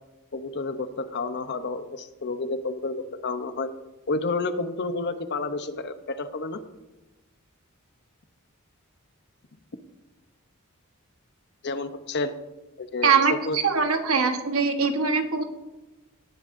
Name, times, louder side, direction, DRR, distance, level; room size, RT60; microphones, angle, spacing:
voice 1, 0.3-3.7 4.1-6.6 11.6-12.3 12.8-13.1 13.5-13.6, left 3 dB, 50° left, 10 dB, 0.8 m, -30 dB
voice 2, 13.0-15.4, right 5 dB, 70° right, 5 dB, 1.3 m, -22 dB
18.0 x 11.0 x 2.6 m, 1.1 s
head